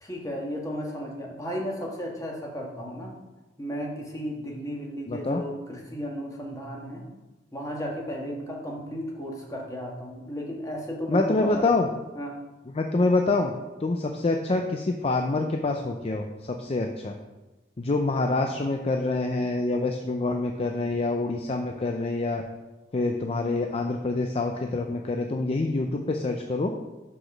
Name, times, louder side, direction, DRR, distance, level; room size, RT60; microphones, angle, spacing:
voice 1, 0.0-3.1 3.6-7.0 7.5-11.8 12.1-12.3, equal, 20° left, -1 dB, 1.5 m, -34 dB
voice 2, 5.1-5.4 11.1-11.9 12.7-13.5 13.8-17.2 17.8-22.4 22.9-26.7, left 2 dB, 35° left, 4 dB, 0.5 m, -26 dB
6.0 x 5.0 x 6.0 m, 1.1 s
head